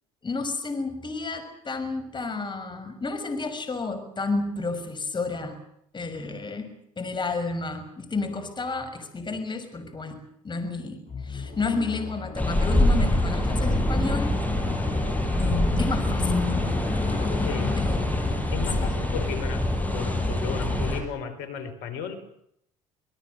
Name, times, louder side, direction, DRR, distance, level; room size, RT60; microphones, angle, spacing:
voice 1, 0.2-5.6 5.9-10.2 10.4-14.4 15.2-16.4 17.1-17.3 17.8-18.5 18.8-18.9, left 3 dB, 30° left, 7 dB, 6.4 m, -31 dB
sound 1, 11.1-18.7, left 5 dB, 45° left, 7.9 m, -34 dB
sound 2, 12.4-21.0, left 1 dB, 10° left, 7.7 m, -25 dB
voice 2, 17.3-17.7 18.5-22.2, left 6 dB, 75° left, 11 dB, 4.7 m, -35 dB
25.5 x 20.5 x 8.0 m, 0.73 s
hypercardioid pair, 65°, 16 cm